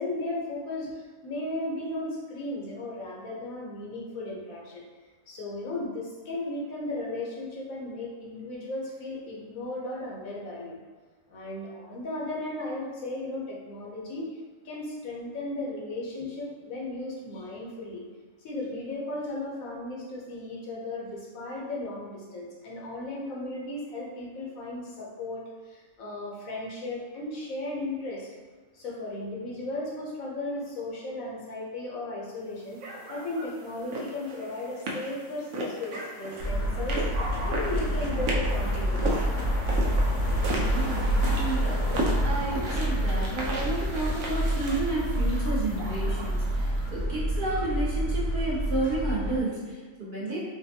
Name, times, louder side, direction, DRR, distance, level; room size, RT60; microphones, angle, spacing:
voice 1, 0.0-4.8 5.3-10.7 11.3-14.3 14.6-18.0 18.4-28.3 28.7-32.8 33.1-37.0 37.4-39.1 42.5-42.7, left 2 dB, 90° left, -3 dB, 1.2 m, -35 dB
sound 1, 32.8-46.9, right 1 dB, 85° right, 1.0 m, -36 dB
sound 2, 36.4-49.4, equal, 60° left, 0.8 m, -28 dB
voice 2, 40.7-41.8 42.1-50.4, right 2 dB, 45° right, -7 dB, 0.8 m, -31 dB
4.0 x 2.2 x 2.7 m, 1.4 s
omnidirectional pair, 1.4 m